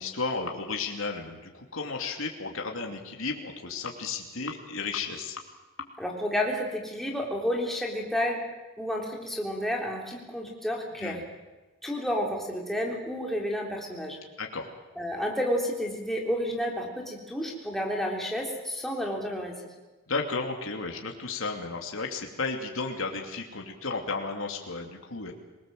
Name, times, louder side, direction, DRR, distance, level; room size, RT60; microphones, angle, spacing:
voice 1, 0.0-5.4 11.0-11.2 14.4-14.7 20.1-25.3, left 4 dB, 75° left, 2 dB, 2.7 m, -33 dB
voice 2, 6.0-8.5 8.8-11.2 11.8-14.2 15.0-19.5, equal, ahead, -1 dB, 3.6 m, -30 dB
26.5 x 19.5 x 7.7 m, 1.2 s
head